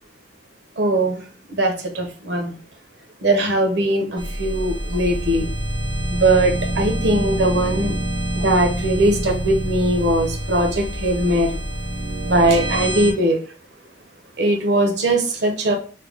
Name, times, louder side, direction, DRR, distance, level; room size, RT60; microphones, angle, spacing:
voice 1, 0.8-1.2 1.5-2.5 3.2-5.5 6.1-7.9 8.4-11.5 12.2-13.4 14.4-15.7, right 1 dB, 65° right, 4 dB, 0.7 m, -20 dB
sound 1, 4.2-13.1, right 1 dB, 25° right, 0.5 m, -26 dB
3.3 x 2.2 x 3.4 m, 0.38 s
head